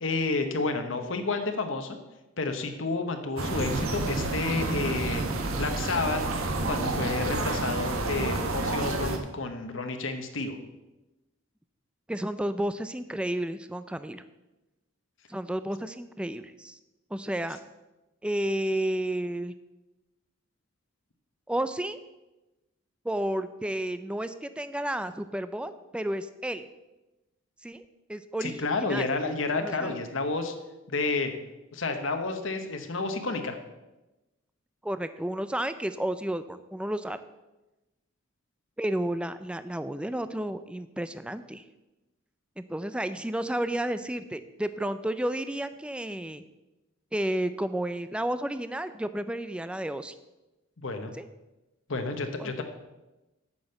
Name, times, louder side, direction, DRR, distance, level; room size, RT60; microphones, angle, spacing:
voice 1, 0.0-2.0 2.4-6.3 6.6-10.6 28.4-30.5 30.9-31.3 31.7-33.6 50.8-51.1 51.9-52.6, left 3 dB, 65° left, 6 dB, 1.0 m, -30 dB
sound 1, 3.4-9.2, right 2 dB, 90° right, 1.3 m, -29 dB
voice 2, 12.1-14.2 15.3-16.8 17.1-17.6 18.2-19.5 21.5-22.0 23.0-26.7 27.6-28.5 28.8-29.1 29.6-29.9 34.8-37.2 38.8-41.6 42.6-46.4 47.1-50.1 51.2-51.3 52.4-52.6, right 1 dB, 5° right, 11 dB, 0.4 m, -32 dB
8.6 x 6.3 x 7.8 m, 1.0 s
head